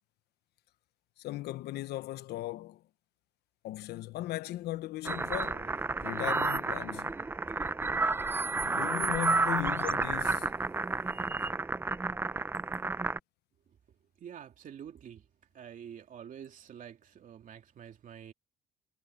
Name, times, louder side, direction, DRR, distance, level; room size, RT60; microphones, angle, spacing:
voice 1, 1.2-2.8 3.6-5.7 6.0-7.1 8.4-10.5, left 15 dB, 75° left, 0.9 m, -37 dB
sound 1, 5.0-13.2, right 3 dB, 15° right, 0.5 m, -31 dB
voice 2, 14.2-15.2 15.5-18.3, right 9 dB, 50° right, 2.9 m, -47 dB
cardioid pair, 110°, 17 cm